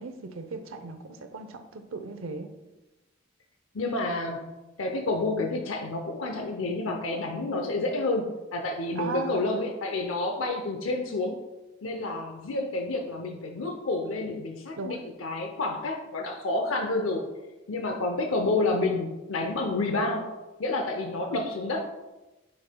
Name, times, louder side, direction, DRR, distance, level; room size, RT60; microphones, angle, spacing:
voice 1, 0.0-2.5 9.0-9.6 14.8-15.0, right 4 dB, 85° right, 8 dB, 0.7 m, -37 dB
voice 2, 3.7-4.5 4.8-11.4 11.8-17.2 17.7-20.3 20.6-21.8, left 2 dB, 85° left, 3 dB, 0.7 m, -29 dB
9.6 x 5.4 x 2.2 m, 1.1 s
head